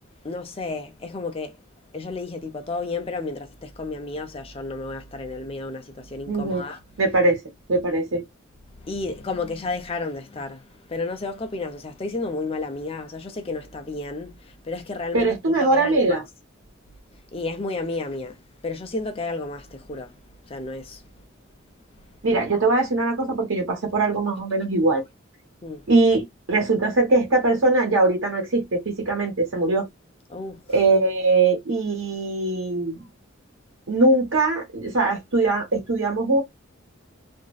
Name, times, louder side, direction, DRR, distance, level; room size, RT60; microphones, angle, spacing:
voice 1, 0.2-1.6 1.9-6.8 8.8-16.2 17.3-20.2 20.5-21.0 25.6-25.8 30.3-30.6, left 3 dB, 30° left, 0.5 m, -32 dB
voice 2, 6.3-6.6 7.0-7.4 7.7-8.2 15.1-16.2 22.2-25.0 25.9-29.9 30.7-33.0 33.9-36.4, right 2 dB, 80° right, 1.0 m, -21 dB
2.5 x 2.0 x 2.3 m
head